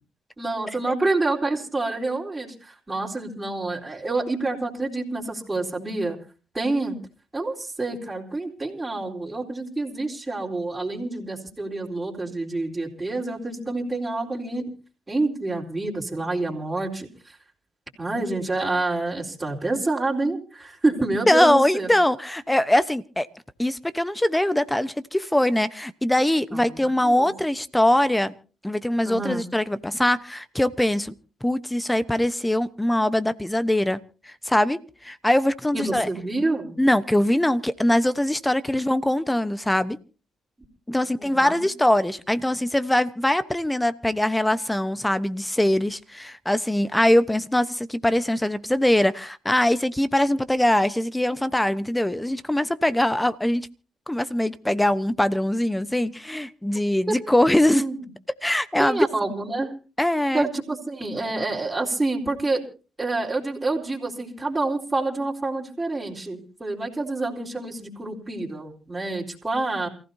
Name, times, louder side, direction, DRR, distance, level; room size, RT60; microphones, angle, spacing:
voice 1, 0.4-6.2 6.5-7.0 7.3-14.7 15.1-17.4 18.0-21.9 26.5-27.3 29.0-29.5 35.7-36.8 40.9-41.6 57.1-57.2 57.5-58.1 58.8-59.7 60.3-62.6 63.0-69.9, right 2 dB, 20° right, 4.1 m, -28 dB
voice 2, 21.3-23.3 23.6-28.3 28.6-31.1 31.4-34.0 34.3-36.1 36.8-40.0 40.9-53.7 54.1-57.8 58.4-59.1 60.0-60.5, left 1 dB, 10° left, 1.0 m, -22 dB
28.5 x 15.5 x 2.8 m
supercardioid pair, 65°, 0 cm